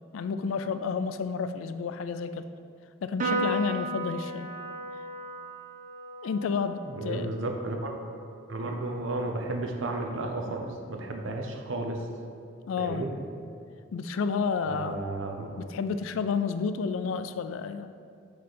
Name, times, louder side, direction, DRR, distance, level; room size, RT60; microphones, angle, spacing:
voice 1, 0.1-2.5 3.0-4.5 6.2-7.3 12.7-13.0 13.9-15.0 15.6-17.9, left 5 dB, 80° left, 10 dB, 0.3 m, -30 dB
Piano, 3.2-9.9, right 1 dB, 40° right, 0.5 m, -36 dB
voice 2, 6.9-7.9 8.5-12.0 12.8-13.1 14.7-15.5, right 2 dB, 75° right, 2 dB, 0.7 m, -33 dB
8.1 x 3.2 x 4.2 m, 2.3 s
head